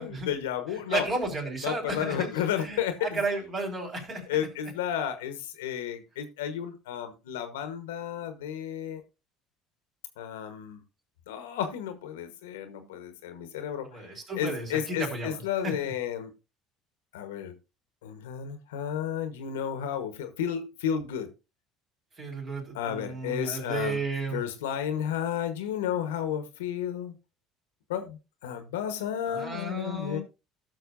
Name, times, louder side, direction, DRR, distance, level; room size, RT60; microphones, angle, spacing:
voice 1, 0.0-1.1 1.6-3.2 4.3-9.0 10.2-10.8 11.3-13.9 14.4-16.3 17.1-17.5 18.0-21.3 22.7-24.0 24.3-27.1 27.9-30.2, left 9 dB, 90° left, 1.1 m, -32 dB
voice 2, 0.9-4.2 13.9-15.7 22.2-24.4 29.3-30.2, right 2 dB, 45° right, 4.3 m, -33 dB
16.5 x 6.3 x 2.5 m
hypercardioid pair, 75°, 0 cm